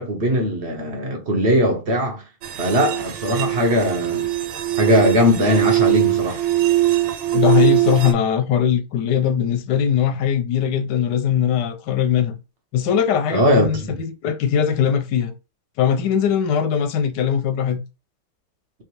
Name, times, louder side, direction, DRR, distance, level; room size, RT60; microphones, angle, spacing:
voice 1, 0.0-2.2 2.6-4.3 4.8-6.4 13.3-14.0, equal, 50° right, 0.8 m, -20 dB
sound 1, 2.4-8.1, right 14 dB, 85° right, 1.5 m, -21 dB
voice 2, 7.3-12.4 12.7-15.3 15.8-17.8, left 8 dB, 70° left, 1.1 m, -20 dB
3.7 x 3.6 x 3.0 m
omnidirectional pair, 2.4 m